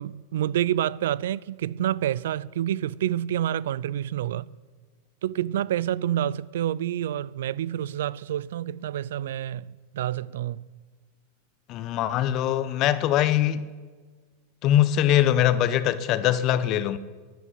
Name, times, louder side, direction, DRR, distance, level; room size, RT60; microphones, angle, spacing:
voice 1, 0.0-4.5 5.2-10.7, right 11 dB, 75° right, 0.4 m, -28 dB
voice 2, 11.7-13.6 14.6-17.0, left 11 dB, 45° left, 0.9 m, -22 dB
11.5 x 10.5 x 9.7 m
hypercardioid pair, 115°, 0 cm